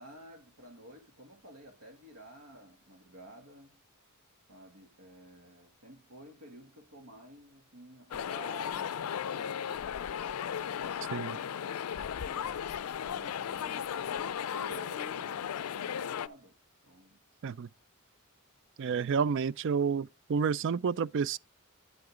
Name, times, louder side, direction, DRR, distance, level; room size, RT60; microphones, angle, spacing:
voice 1, 0.0-3.8 4.5-9.9 10.5-12.7 13.0-16.5 16.8-17.2, equal, 85° right, 2.4 m, -52 dB
sound 1, 8.1-16.3, left 8 dB, 85° left, 0.4 m, -36 dB
voice 2, 18.8-21.4, right 6 dB, 60° right, 0.4 m, -30 dB
9.5 x 8.0 x 3.7 m
head